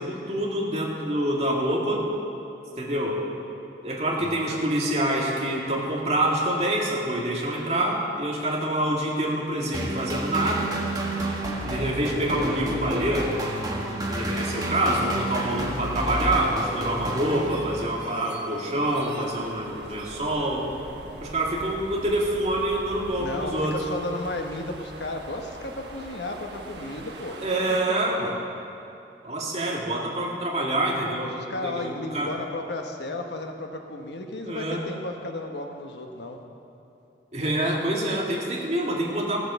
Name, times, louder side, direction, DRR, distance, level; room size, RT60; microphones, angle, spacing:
voice 1, 0.0-2.1 2.8-3.3 3.8-10.7 11.6-13.4 14.1-20.7 21.2-23.8 27.4-28.4 29.2-31.4 31.6-32.3 34.4-34.8 37.3-39.4, right 1 dB, 35° right, -2 dB, 2.0 m, -26 dB
voice 2, 4.2-4.6 23.2-27.4 31.4-36.4, left 2 dB, 80° left, 4 dB, 1.1 m, -34 dB
sound 1, 9.7-18.1, right 1 dB, 20° right, 1.4 m, -30 dB
sound 2, 14.3-27.8, right 2 dB, 75° right, 1.2 m, -43 dB
15.5 x 7.9 x 6.9 m, 2.8 s
head